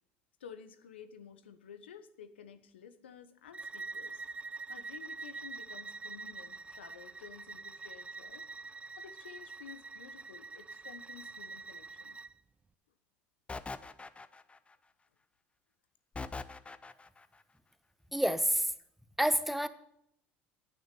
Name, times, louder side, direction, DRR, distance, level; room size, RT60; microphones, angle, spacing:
voice 1, 0.4-4.2 4.7-8.4 9.0-12.2, left 8 dB, 85° left, 11 dB, 1.1 m, -52 dB
Bowed string instrument, 3.5-12.3, right 4 dB, 20° right, 0.7 m, -45 dB
sound 1, 13.5-14.7 16.2-17.3, left 3 dB, 20° left, 0.9 m, -42 dB
voice 2, 18.1-18.7 19.2-19.7, equal, ahead, 13 dB, 1.1 m, -28 dB
10.5 x 9.2 x 6.9 m, 0.72 s
hypercardioid pair, 70°, 6 cm